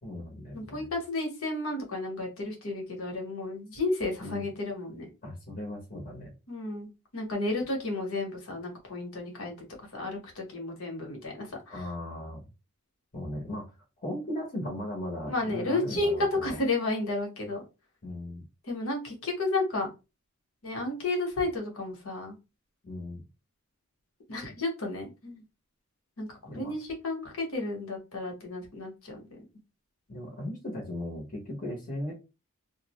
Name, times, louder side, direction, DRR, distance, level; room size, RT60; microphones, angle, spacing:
voice 1, 0.0-0.9 4.2-4.4 5.2-6.3 11.7-12.4 13.1-13.7 14.0-16.6 18.0-18.4 22.8-23.2 26.4-26.7 30.1-32.1, left 1 dB, 40° left, -2 dB, 0.8 m, -37 dB
voice 2, 0.5-5.1 6.5-6.9 7.1-9.7 9.9-11.8 15.3-17.6 18.7-19.9 20.6-22.3 24.3-25.4 26.2-29.4, left 2 dB, 80° left, 1 dB, 0.9 m, -32 dB
2.5 x 2.0 x 2.8 m, 0.28 s
head